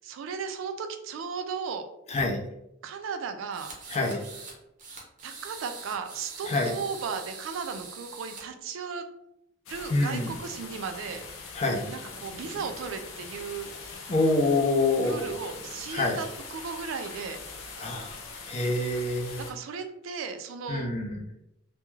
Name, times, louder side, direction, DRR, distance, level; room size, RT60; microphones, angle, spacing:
voice 1, 0.0-1.9 2.8-4.0 5.2-9.0 9.7-11.6 11.9-13.7 15.0-17.4 19.4-20.9, right 5 dB, 80° right, 8 dB, 0.3 m, -36 dB
voice 2, 2.1-2.4 3.9-4.2 6.5-6.7 9.9-10.3 11.5-11.8 14.1-15.3 15.9-16.2 17.8-18.1 18.5-19.4 20.7-21.2, left 2 dB, 35° left, 2 dB, 0.4 m, -26 dB
sound 1, 3.5-4.5 4.8-8.4, right 4 dB, 40° right, 0.6 m, -43 dB
sound 2, 9.7-19.5, left 4 dB, 90° left, 0.5 m, -42 dB
2.3 x 2.1 x 3.0 m, 0.83 s
head